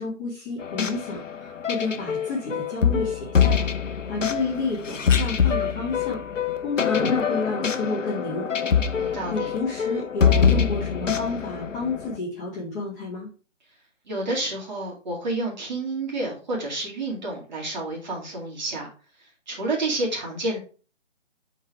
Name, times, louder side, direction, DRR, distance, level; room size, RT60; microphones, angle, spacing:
voice 1, 0.0-3.7 4.1-6.2 6.6-8.8 9.0-13.3, left 3 dB, 15° left, -7 dB, 1.7 m, -31 dB
sound 1, 0.6-12.2, left 7 dB, 85° left, 0.8 m, -24 dB
voice 2, 8.9-9.5 14.1-18.9 19.5-20.6, right 2 dB, 35° right, -2 dB, 2.3 m, -29 dB
5.3 x 3.9 x 4.9 m, 0.36 s
figure-of-eight pair, 155°, 37 cm